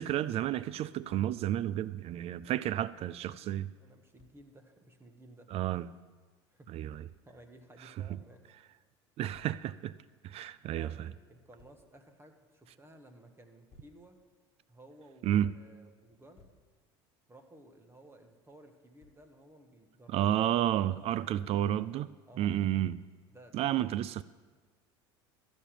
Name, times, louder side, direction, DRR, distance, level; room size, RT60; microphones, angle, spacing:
voice 1, 0.0-3.7 5.5-5.9 6.7-7.0 8.1-8.2 9.2-9.9 10.2-11.1 15.2-15.5 20.1-22.1 22.4-23.0 23.5-24.2, right 12 dB, 45° right, 0.4 m, -31 dB
voice 2, 2.4-5.5 6.5-7.0 7.2-8.5 10.7-14.2 14.7-16.5 17.3-20.4 20.7-21.7 22.3-22.5 23.3-23.7, right 1 dB, 15° right, 1.6 m, -57 dB
Thump thud, 4.2-4.4 6.9-7.2 9.3-9.6 11.6-11.9 13.7-14.0 16.1-16.7 19.0-19.3, left 3 dB, 40° left, 1.5 m, -61 dB
13.5 x 5.2 x 9.1 m
hypercardioid pair, 75°, 14 cm